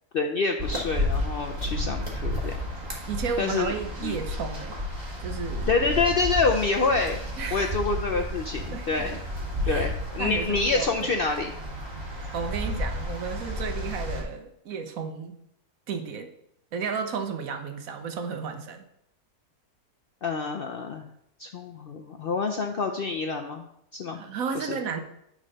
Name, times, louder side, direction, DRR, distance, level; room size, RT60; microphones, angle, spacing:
voice 1, 0.1-2.6 3.4-3.7 4.0-4.2 5.7-7.2 7.5-9.2 9.7-11.5 20.2-21.0 21.4-23.6 23.9-24.2 24.5-24.8, left 4 dB, 60° left, 4 dB, 0.6 m, -27 dB
sound 1, 0.6-14.2, left 1 dB, 30° right, 1.8 m, -32 dB
voice 2, 3.1-4.8 5.2-5.7 7.4-7.8 8.7-9.1 9.6-9.9 10.2-11.1 12.3-15.4 15.9-16.3 16.7-18.8 24.1-25.0, right 6 dB, 70° right, 7 dB, 1.3 m, -33 dB
9.8 x 4.0 x 5.2 m, 0.75 s
omnidirectional pair, 1.5 m